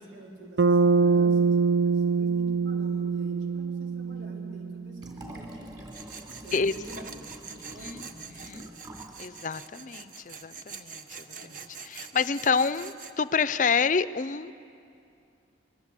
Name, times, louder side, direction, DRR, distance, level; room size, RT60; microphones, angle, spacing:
voice 1, 0.0-5.8 6.3-8.9 11.3-11.6, right 1 dB, 90° right, -1 dB, 4.1 m, -47 dB
Bass guitar, 0.6-4.9, right 5 dB, 65° right, 0.6 m, -24 dB
Liquid, 5.0-9.2 9.5-9.6, right 1 dB, 20° right, 2.7 m, -46 dB
Tools, 5.9-13.1, right 5 dB, 45° right, 1.1 m, -44 dB
voice 2, 9.2-10.9 11.9-14.5, left 5 dB, 45° left, 15 dB, 0.5 m, -27 dB
26.0 x 21.0 x 8.3 m, 2.6 s
head